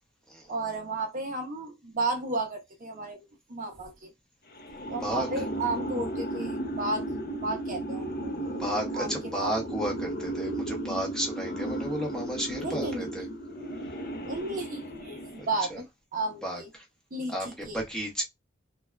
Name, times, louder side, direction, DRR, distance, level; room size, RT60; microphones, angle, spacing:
voice 1, 0.5-4.1 4.9-7.1 7.4-8.3 8.9-9.6 12.6-13.3 14.2-15.9 16.1-16.7 17.1-17.8, right 2 dB, 40° right, 0.7 m, -33 dB
sound 1, 4.5-15.6, right 1 dB, 45° left, 0.6 m, -35 dB
voice 2, 4.8-5.3 8.4-13.3 13.9-14.0 15.4-15.8 16.4-16.8 17.3-18.2, equal, 5° left, 0.9 m, -33 dB
3.3 x 2.3 x 2.2 m
head